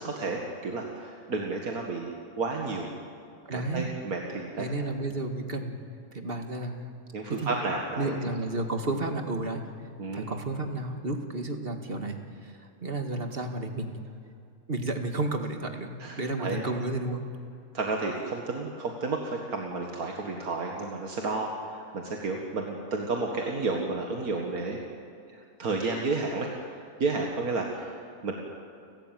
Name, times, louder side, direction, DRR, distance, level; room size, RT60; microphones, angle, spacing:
voice 1, 0.0-2.1 2.4-2.9 3.5-4.7 7.1-8.1 10.0-10.3 16.0-16.6 17.7-24.8 25.3-26.5 27.0-28.3, right 3 dB, 85° right, 1 dB, 2.3 m, -31 dB
voice 2, 3.5-3.9 4.6-5.8 6.1-6.9 7.3-7.5 8.0-9.6 10.1-14.0 14.7-17.2, right 2 dB, 40° right, 5 dB, 2.1 m, -32 dB
30.0 x 13.5 x 9.2 m, 2.4 s
omnidirectional pair, 1.5 m